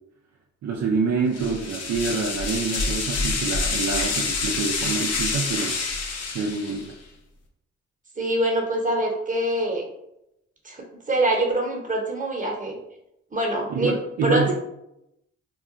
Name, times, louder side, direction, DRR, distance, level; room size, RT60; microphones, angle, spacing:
voice 1, 0.6-5.8 6.3-6.8 13.7-14.5, right 4 dB, 65° right, -1 dB, 0.5 m, -26 dB
sound 1, 1.3-6.9, left 4 dB, 60° left, 0.6 m, -27 dB
voice 2, 8.2-9.8 10.6-12.8 13.3-14.5, right 1 dB, 25° right, 0 dB, 0.9 m, -24 dB
2.3 x 2.2 x 3.7 m, 0.83 s
supercardioid pair, 45°, 29 cm